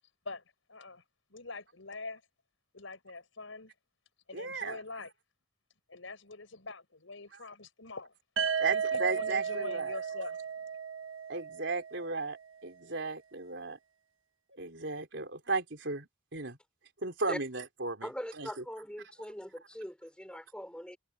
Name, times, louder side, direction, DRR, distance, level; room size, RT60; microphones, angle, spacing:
voice 1, 0.7-1.0 1.3-2.2 2.7-3.7 4.3-5.1 5.9-8.1 8.6-10.4, left 3 dB, 85° left, 5.0 m, -44 dB
voice 2, 4.3-4.8 7.3-7.4 8.6-10.0 11.3-12.4 12.6-13.8 14.6-16.6 17.0-18.1 18.4-18.5, right 3 dB, 65° right, 3.9 m, -35 dB
sound 1, 8.4-12.2, right 7 dB, 90° right, 1.3 m, -34 dB
voice 3, 18.0-21.0, equal, 5° left, 3.6 m, -41 dB
head